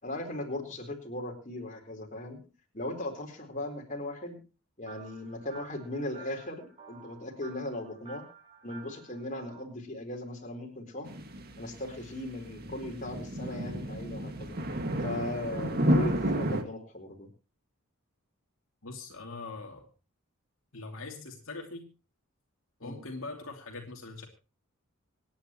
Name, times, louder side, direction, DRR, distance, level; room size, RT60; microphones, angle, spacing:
voice 1, 0.0-2.4 2.7-4.4 4.8-8.2 8.6-11.1 11.6-14.5 15.0-17.3 22.8-23.0, left 1 dB, 35° left, 2 dB, 4.2 m, -38 dB
sound 1, 4.9-9.6, right 6 dB, 25° right, 6.9 m, -52 dB
sound 2, 11.0-16.6, equal, 45° right, 2.0 m, -31 dB
voice 2, 18.8-19.9 20.7-21.9 22.8-24.3, left 3 dB, 65° left, 1 dB, 2.8 m, -42 dB
27.5 x 10.0 x 3.1 m, 0.32 s
head